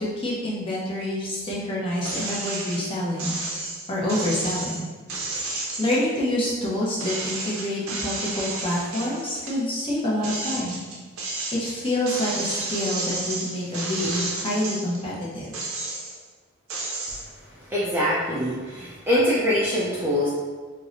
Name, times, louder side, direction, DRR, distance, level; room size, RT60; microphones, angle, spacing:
voice 1, 0.0-3.4 3.9-4.9 5.3-10.8 11.3-15.6, left 1 dB, 25° left, -6 dB, 0.7 m, -27 dB
sound 1, 2.0-2.8 3.2-6.7 7.0-9.6 10.0-15.0 15.4-16.3 16.7-17.2, right 2 dB, 70° right, 0.6 m, -31 dB
voice 2, 17.7-20.3, equal, 10° right, -8 dB, 0.4 m, -23 dB
4.4 x 2.1 x 2.5 m, 1.4 s
head